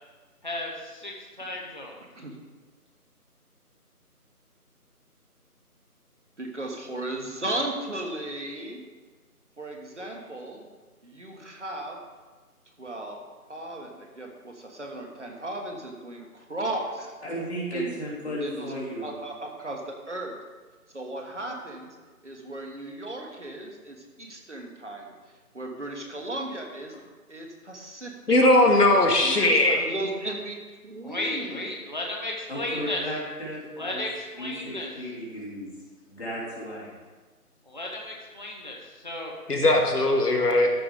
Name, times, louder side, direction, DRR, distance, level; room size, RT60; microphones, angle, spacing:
voice 1, 0.4-2.0 31.0-33.0 33.8-34.9 37.7-39.3 39.9-40.0, left 1 dB, 30° right, -1 dB, 0.9 m, -34 dB
voice 2, 6.4-8.8 9.6-10.6 11.0-12.0 12.8-13.2 13.5-17.1 17.7-17.9 18.4-18.7 19.0-20.4 20.9-21.9 22.2-25.1 25.5-26.9 27.3-28.1 28.6-28.9 29.2-31.7, right 1 dB, 50° right, 1 dB, 1.4 m, -36 dB
voice 3, 17.2-19.1 32.5-34.0 34.4-35.7 36.1-36.9, equal, 45° left, -7 dB, 3.1 m, -34 dB
voice 4, 28.3-29.8 39.5-40.7, left 1 dB, 80° left, 2 dB, 1.8 m, -19 dB
13.5 x 5.0 x 3.7 m, 1.3 s
figure-of-eight pair, 175°, 46 cm